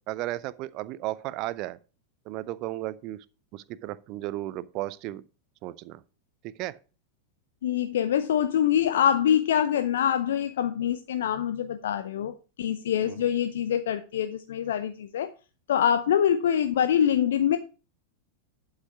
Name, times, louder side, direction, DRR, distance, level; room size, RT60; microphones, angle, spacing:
voice 1, 0.1-1.8 2.3-3.2 3.5-5.2 5.6-6.0 6.4-6.8 13.1-13.2, right 16 dB, 40° right, 0.6 m, -34 dB
voice 2, 7.6-15.3 15.7-17.6, left 9 dB, 60° left, 0.6 m, -25 dB
11.5 x 5.6 x 4.6 m
figure-of-eight pair, 90°, 0 cm